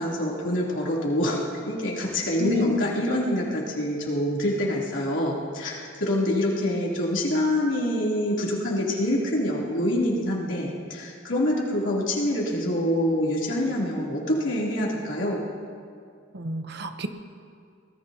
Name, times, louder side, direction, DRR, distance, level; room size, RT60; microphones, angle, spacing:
voice 1, 0.0-1.4 1.6-15.4, left 1 dB, 85° left, -5 dB, 3.1 m, -26 dB
voice 2, 2.4-2.8 16.3-17.1, left 3 dB, 60° right, 7 dB, 0.9 m, -28 dB
24.5 x 19.5 x 2.8 m, 2.3 s
head